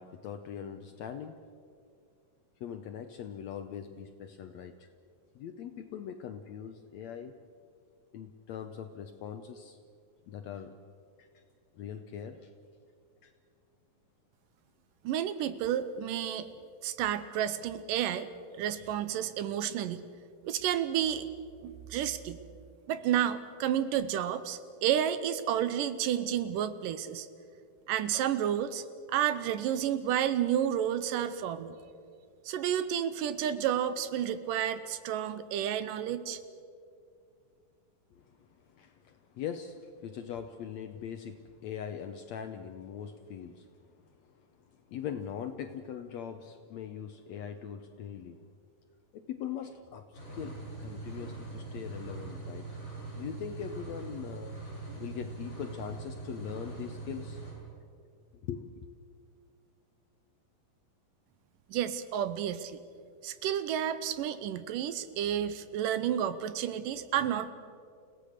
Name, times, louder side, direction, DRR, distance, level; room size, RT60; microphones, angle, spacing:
voice 1, 0.0-1.4 2.6-4.9 5.3-7.3 8.1-9.8 10.3-10.7 11.2-11.4 11.7-12.5 13.2-13.3 38.1-38.2 38.6-43.7 44.2-44.3 44.9-48.4 49.1-50.0 50.3-52.7 53.2-54.5 55.0-57.4 58.4-58.9, left 8 dB, 75° left, 8 dB, 1.6 m, -41 dB
voice 2, 15.0-16.5 16.8-18.3 18.5-20.1 20.4-21.3 21.6-22.4 22.9-27.3 27.9-31.8 32.5-36.4 61.7-62.8 63.2-67.5, right 10 dB, 75° right, 13 dB, 2.3 m, -31 dB
sound 1, 50.1-57.5, right 3 dB, 30° left, 8.3 m, -42 dB
29.5 x 17.0 x 6.6 m, 2.3 s
omnidirectional pair, 4.1 m